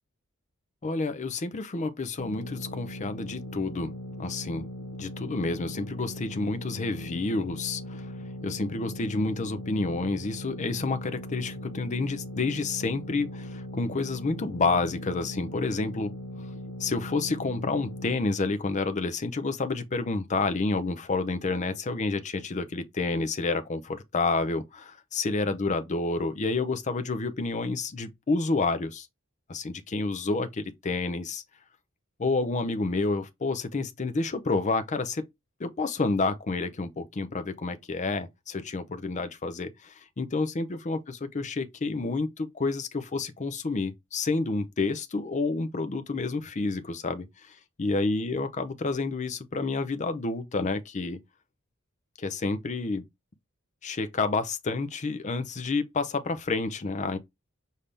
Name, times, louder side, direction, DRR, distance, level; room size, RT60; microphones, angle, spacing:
voice 1, 0.8-3.9 4.2-4.7 5.0-8.1 8.4-16.1 16.8-29.1 29.5-31.4 32.2-35.2 35.6-47.3 47.8-51.2 52.2-53.1 53.8-57.2, left 3 dB, 35° left, 0.5 m, -29 dB
sound 1, 2.2-18.1, left 1 dB, 85° left, 0.6 m, -39 dB
5.2 x 2.7 x 3.3 m
head